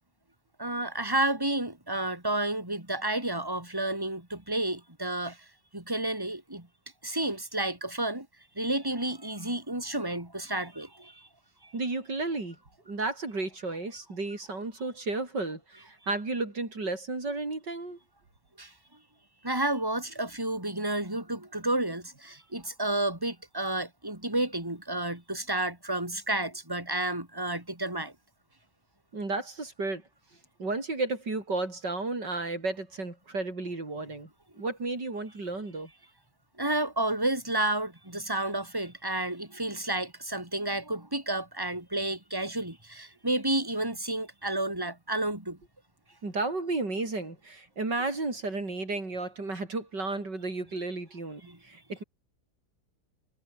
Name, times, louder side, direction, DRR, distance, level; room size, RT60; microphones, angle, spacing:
voice 1, 0.6-5.4 5.7-6.7 7.0-8.3 8.6-11.3 11.6-11.7 18.6-18.7 19.4-28.1 36.6-45.6 51.4-51.6, right 1 dB, 10° right, 5.0 m, -31 dB
voice 2, 11.7-12.6 12.9-18.0 29.1-30.0 30.6-34.3 34.5-35.9 46.2-52.0, right 3 dB, 90° right, 6.1 m, -33 dB
omnidirectional pair, 1.8 m